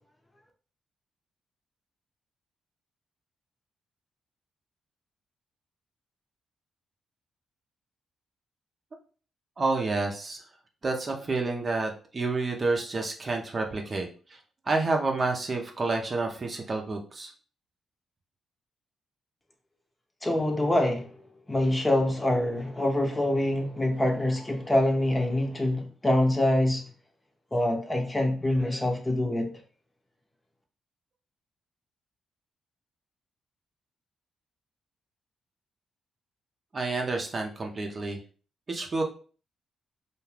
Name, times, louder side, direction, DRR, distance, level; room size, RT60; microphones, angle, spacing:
voice 1, 9.6-10.4 10.8-14.1 14.7-17.3 36.7-38.2 38.7-39.0, right 3 dB, 40° right, 0.6 m, -29 dB
voice 2, 20.2-21.1 21.5-26.8 27.5-29.5, left 1 dB, 20° left, 0.8 m, -25 dB
2.4 x 2.3 x 3.2 m
supercardioid pair, 50°, 0 cm